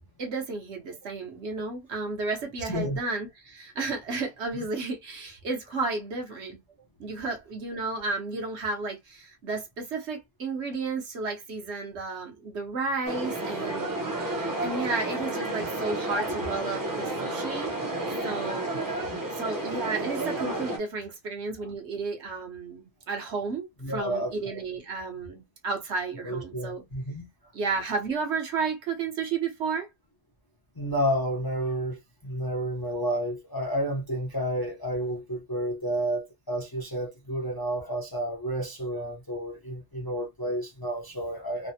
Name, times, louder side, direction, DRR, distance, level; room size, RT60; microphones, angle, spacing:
voice 1, 0.0-6.6 7.0-13.9 14.3-17.7 18.2-19.0 19.3-26.8 27.5-29.9, right 4 dB, 65° right, 1.2 m, -32 dB
voice 2, 2.6-3.0 4.5-4.7 23.8-24.6 26.2-27.3 30.8-41.7, equal, 25° left, 0.6 m, -31 dB
sound 1, 13.0-20.8, right 2 dB, 25° right, 0.5 m, -31 dB
3.2 x 2.0 x 2.7 m
omnidirectional pair, 1.2 m